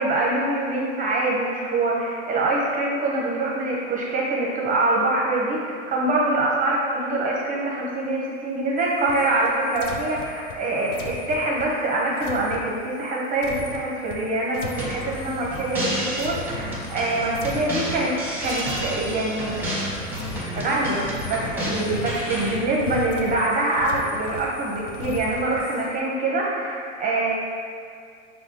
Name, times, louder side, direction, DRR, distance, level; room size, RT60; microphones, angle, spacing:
voice 1, 0.0-18.1 18.4-19.8 20.3-27.3, right 2 dB, 20° right, -4 dB, 0.6 m, -24 dB
sound 1, 8.8-17.1 17.3-18.2 18.4-26.0, left 4 dB, 75° left, 0.6 m, -38 dB
sound 2, 14.8-22.5, equal, 5° right, 0.9 m, -31 dB
6.0 x 2.3 x 2.7 m, 2.2 s
hypercardioid pair, 100°, 38 cm